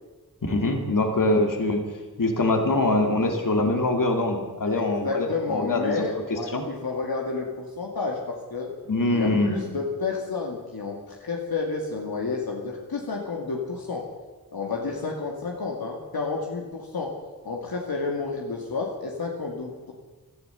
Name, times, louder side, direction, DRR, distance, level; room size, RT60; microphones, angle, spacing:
voice 1, 0.4-1.8 2.2-6.0 6.3-6.6 8.9-9.6, left 2 dB, 60° left, 4 dB, 2.5 m, -23 dB
voice 2, 4.6-8.7 9.1-14.0 14.5-17.1 17.4-19.9, left 4 dB, 75° left, -1 dB, 2.1 m, -30 dB
15.5 x 12.5 x 7.0 m, 1.3 s
cardioid pair, 50°, 37 cm